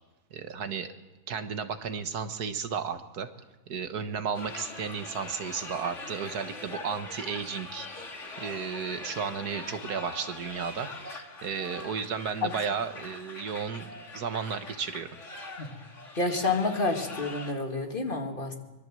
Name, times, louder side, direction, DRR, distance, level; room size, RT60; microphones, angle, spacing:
voice 1, 0.3-0.9 1.3-3.3 3.7-7.9 8.4-15.1, right 6 dB, 90° right, 9 dB, 1.9 m, -33 dB
sound 1, 4.3-17.5, left 3 dB, 50° left, 2.5 m, -42 dB
voice 2, 16.2-18.6, left 3 dB, 35° left, 4 dB, 2.4 m, -29 dB
24.0 x 22.0 x 7.7 m, 1.1 s
omnidirectional pair, 1.6 m